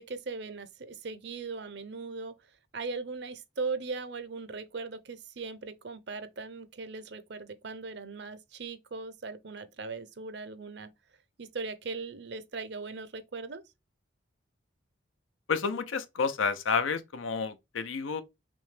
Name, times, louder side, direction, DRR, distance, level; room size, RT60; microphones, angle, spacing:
voice 1, 0.0-10.9 11.4-13.6, right 4 dB, 60° right, 0.6 m, -39 dB
voice 2, 15.5-18.2, left 5 dB, 85° left, 0.6 m, -30 dB
5.9 x 2.2 x 3.2 m
head